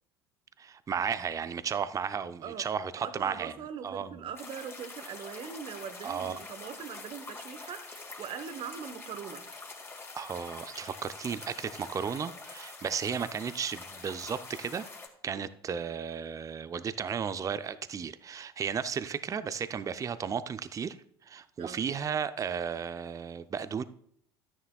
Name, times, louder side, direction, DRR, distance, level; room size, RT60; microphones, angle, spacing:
voice 1, 0.6-3.5 3.8-4.2 6.0-6.4 10.2-14.8 15.2-21.0 21.3-23.8, right 7 dB, 25° right, 0.5 m, -34 dB
voice 2, 2.9-9.5 15.3-15.4 21.6-21.8, right 7 dB, 45° right, 1.0 m, -41 dB
sound 1, 4.4-15.1, left 3 dB, 20° left, 2.2 m, -45 dB
12.5 x 9.9 x 2.3 m
hypercardioid pair, 70°, 13 cm